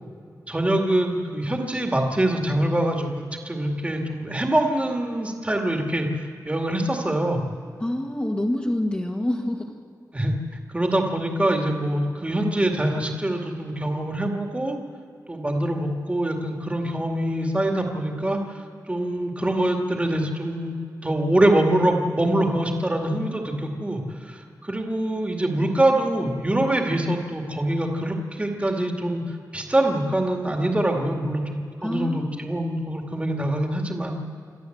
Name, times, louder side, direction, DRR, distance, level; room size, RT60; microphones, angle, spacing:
voice 1, 0.5-7.5 10.1-10.4 10.7-14.8 15.3-20.8 21.0-29.2 29.5-34.2, right 1 dB, 20° right, 2 dB, 2.1 m, -24 dB
voice 2, 7.8-9.7 31.8-32.5, left 1 dB, 20° left, -2 dB, 1.6 m, -26 dB
27.5 x 12.5 x 7.9 m, 2.4 s
wide cardioid pair, 100°, 7 cm